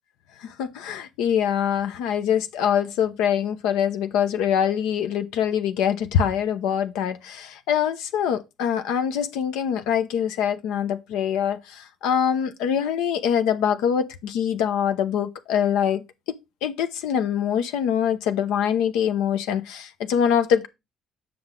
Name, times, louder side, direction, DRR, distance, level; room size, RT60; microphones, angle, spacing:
voice 1, 0.4-16.0 16.3-20.7, left 8 dB, 90° left, 0.9 m, -24 dB
7.8 x 6.0 x 3.8 m
cardioid pair, 85°, 0 cm